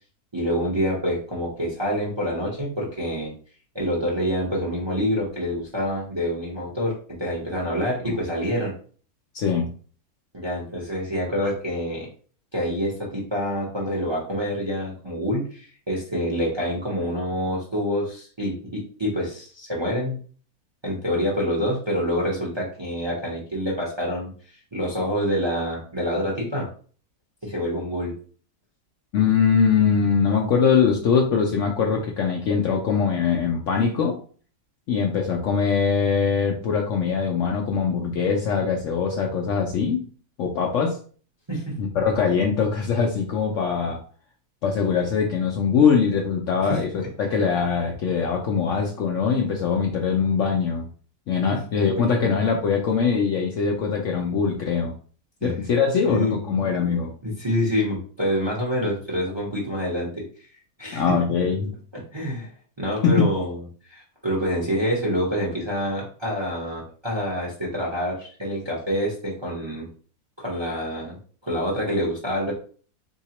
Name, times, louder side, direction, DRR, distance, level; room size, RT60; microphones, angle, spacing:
voice 1, 0.3-3.3 3.7-8.7 10.3-12.1 12.5-20.2 20.8-24.3 24.7-26.7 27.4-28.1 41.5-41.7 46.6-47.1 52.0-52.3 55.4-55.5 56.0-56.6 57.2-60.3 60.8-61.2 62.1-62.5 62.8-63.6 63.9-69.9 70.4-72.5, equal, 25° right, -3 dB, 0.6 m, -27 dB
voice 2, 9.3-9.7 29.1-34.2 34.9-40.0 40.4-41.0 41.8-44.0 44.6-50.9 51.3-54.9 55.4-57.1 60.9-61.7 63.0-63.3, left 6 dB, 65° left, 1 dB, 0.8 m, -22 dB
3.8 x 2.8 x 2.9 m, 0.42 s
omnidirectional pair, 1.7 m